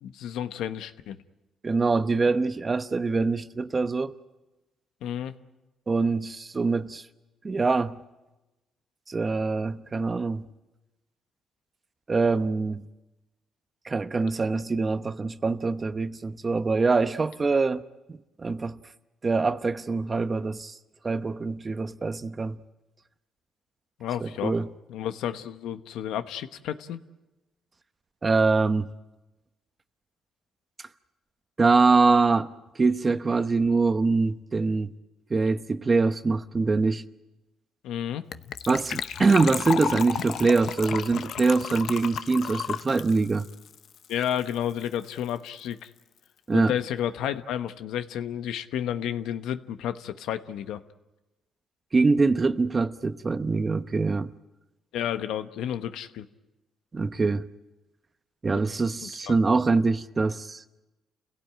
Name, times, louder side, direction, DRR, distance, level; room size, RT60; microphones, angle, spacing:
voice 1, 0.0-1.2 5.0-5.3 24.0-24.6 24.9-27.0 37.8-38.2 44.1-45.9 46.5-50.8 54.9-56.3 59.0-59.3, left 10 dB, 85° left, 1.1 m, -31 dB
voice 2, 1.6-4.1 5.9-7.0 7.4-8.0 9.1-10.5 12.1-12.8 13.8-17.8 18.1-18.8 19.2-20.7 21.0-22.6 24.2-24.7 28.2-28.9 31.6-32.5 32.8-34.9 35.3-37.0 38.7-43.5 46.5-46.7 51.9-54.3 56.9-57.5 58.4-60.6, right 4 dB, 30° right, 0.9 m, -24 dB
Gurgling / Trickle dribble / Fill (with liquid), 38.3-44.5 44.8-44.9 45.1-45.3 45.6-45.7, left 8 dB, 65° left, 0.8 m, -33 dB
29.5 x 17.0 x 8.9 m
cardioid pair, 90°, 0 cm